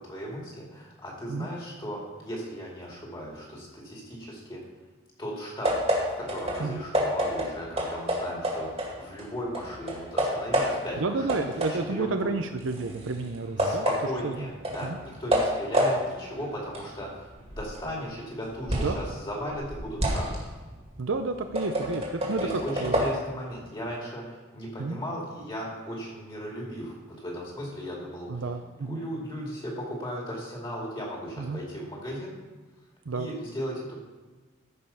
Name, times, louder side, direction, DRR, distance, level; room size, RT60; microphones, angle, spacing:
voice 1, 0.0-4.6 5.2-5.7 6.2-11.4 11.7-12.3 13.6-20.4 22.4-28.4 28.8-32.3 33.1-34.0, equal, 25° left, -3 dB, 2.4 m, -36 dB
sound 1, 5.6-9.3 9.5-11.0 11.3-19.0 19.4-23.1, equal, 30° right, 2.1 m, -29 dB
voice 2, 11.0-13.9 14.2-14.5 14.8-15.0 18.8-19.0 21.0-23.0 24.8-25.0 28.3-29.0 31.4-31.6 33.1-33.3, right 3 dB, 65° right, 7 dB, 0.6 m, -31 dB
14.0 x 5.5 x 5.6 m, 1.3 s
head